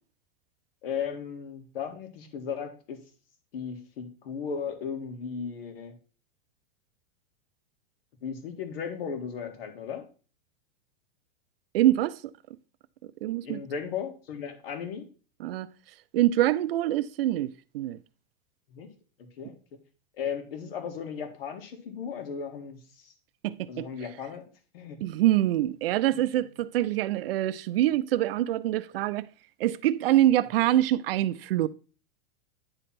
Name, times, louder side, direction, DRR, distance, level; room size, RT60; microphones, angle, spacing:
voice 1, 0.8-3.0 3.5-5.9 8.2-10.0 13.4-15.1 18.7-18.9 19.4-19.5 20.2-23.1 23.7-24.4 24.7-25.0, left 7 dB, 75° left, 1.9 m, -36 dB
voice 2, 11.7-12.2 13.2-13.6 15.4-15.7 16.1-18.0 23.4-23.9 25.0-29.2 29.6-31.7, right 14 dB, 75° right, 0.5 m, -25 dB
9.7 x 3.3 x 5.9 m
supercardioid pair, 165°, 29 cm